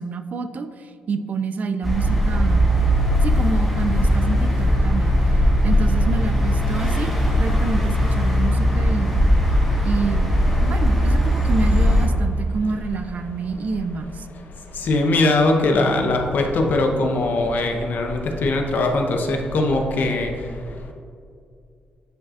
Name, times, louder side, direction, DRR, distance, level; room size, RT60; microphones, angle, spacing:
voice 1, 0.0-2.7 3.2-5.2 5.6-7.1 7.4-9.3 9.8-10.3 10.6-14.3, right 4 dB, 50° right, 9 dB, 0.4 m, -28 dB
sound 1, 1.8-12.1, equal, ahead, 1.3 m, -19 dB
voice 2, 14.8-20.3, left 2 dB, 65° left, 2 dB, 0.8 m, -20 dB
9.1 x 5.0 x 2.5 m, 2.4 s
cardioid pair, 105°, 3 cm